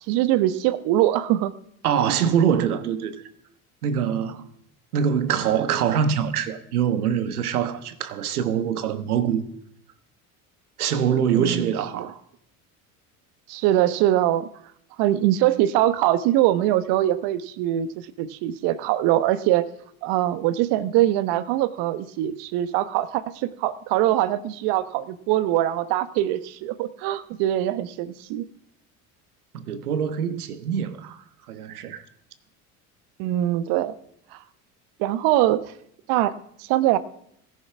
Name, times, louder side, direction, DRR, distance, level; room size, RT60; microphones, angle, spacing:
voice 1, 0.1-1.5 11.4-12.1 13.5-14.5 15.0-19.6 20.0-28.4 33.2-34.0 34.3-34.4 35.0-35.7 36.1-36.3 36.6-37.0, right 13 dB, 65° right, 1.1 m, -22 dB
voice 2, 1.8-3.2 3.8-4.5 4.9-9.4 10.8-12.2 29.5-31.2 31.5-32.0, right 8 dB, 90° right, 1.3 m, -24 dB
16.5 x 10.5 x 6.0 m
hypercardioid pair, 75°, 43 cm